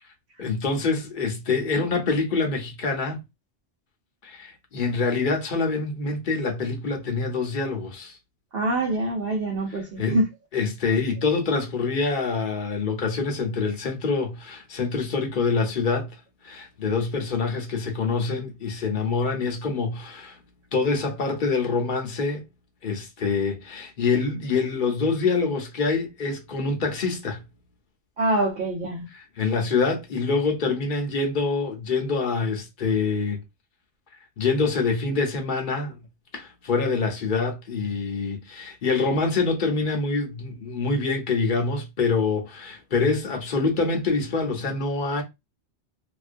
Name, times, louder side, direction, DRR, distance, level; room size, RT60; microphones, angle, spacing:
voice 1, 0.4-3.2 4.2-8.2 9.7-10.2 10.5-16.1 16.4-20.4 20.7-22.4 22.8-27.4 29.1-33.4 34.4-36.0 36.3-45.2, left 4 dB, 55° left, 0.7 m, -25 dB
voice 2, 8.5-10.3 28.2-29.1, right 1 dB, 60° right, 0.9 m, -25 dB
2.5 x 2.2 x 2.5 m
omnidirectional pair, 1.2 m